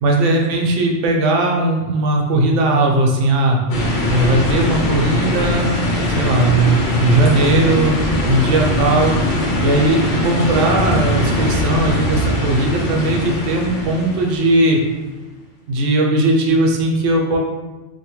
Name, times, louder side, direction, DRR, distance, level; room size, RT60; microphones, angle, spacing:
voice 1, 0.0-3.6 4.1-5.7 6.1-8.0 8.3-9.1 9.6-14.8 15.7-17.4, right 2 dB, 85° right, 1 dB, 0.9 m, -17 dB
sound 1, 3.7-14.9, left 1 dB, 60° left, 0.5 m, -21 dB
2.8 x 2.1 x 3.0 m, 1.1 s
omnidirectional pair, 1.2 m